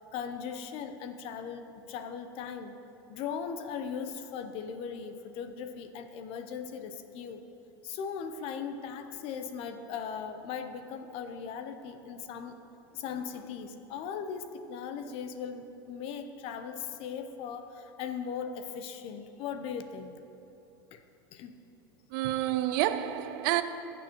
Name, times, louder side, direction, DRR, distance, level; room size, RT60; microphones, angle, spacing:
voice 1, 0.0-2.7 3.1-7.4 7.8-12.6 12.9-20.1 20.9-21.0 21.3-21.5, left 6 dB, 50° left, 0.7 m, -38 dB
voice 2, 22.1-23.6, right 13 dB, 65° right, 0.5 m, -28 dB
15.0 x 7.1 x 3.0 m
supercardioid pair, 120°, 12 cm